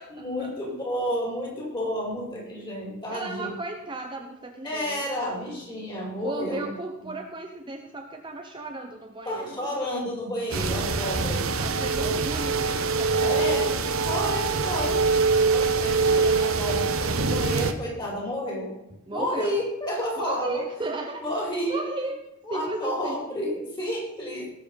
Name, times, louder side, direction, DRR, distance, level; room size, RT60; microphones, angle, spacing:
voice 1, 0.0-3.5 4.6-6.6 7.0-7.1 9.2-11.5 12.0-12.2 13.2-13.7 14.0-15.0 15.5-18.7 19.1-20.6 21.2-21.8 22.4-24.5, equal, 20° left, -2 dB, 5.0 m, -31 dB
voice 2, 3.1-5.0 6.2-9.6 11.6-14.0 19.1-19.6 20.2-21.2 21.6-22.2 22.5-23.2, right 2 dB, 25° right, 2 dB, 1.0 m, -34 dB
sound 1, 10.5-17.7, right 4 dB, 75° right, 1.1 m, -24 dB
18.0 x 7.7 x 5.4 m, 0.86 s
head